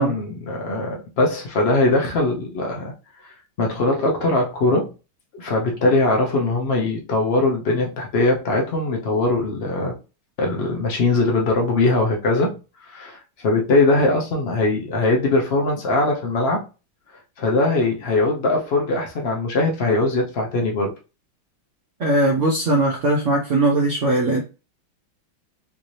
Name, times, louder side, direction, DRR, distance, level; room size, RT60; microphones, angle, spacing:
voice 1, 0.0-2.9 3.6-4.9 5.3-9.9 10.4-12.6 12.9-16.7 17.4-20.9, left 2 dB, 75° left, 0.5 m, -21 dB
voice 2, 22.0-24.4, right 2 dB, 65° right, 0.7 m, -19 dB
3.7 x 2.7 x 3.1 m
omnidirectional pair, 2.3 m